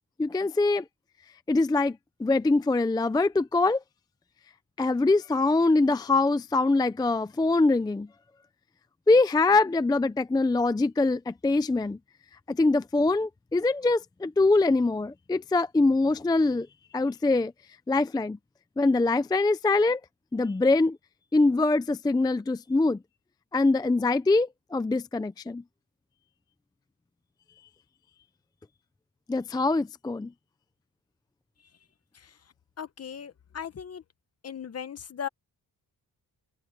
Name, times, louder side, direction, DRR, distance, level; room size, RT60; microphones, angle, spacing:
voice 1, 0.2-0.8 1.5-3.8 4.8-8.1 9.1-12.0 12.5-16.7 16.9-17.5 17.9-18.4 18.8-20.0 20.3-21.0 21.3-23.0 23.5-25.6 29.3-30.3, left 3 dB, 10° left, 0.4 m, -23 dB
voice 2, 32.8-34.0 34.4-35.3, left 8 dB, 40° left, 0.8 m, -38 dB
open air
wide cardioid pair, 155°, 38 cm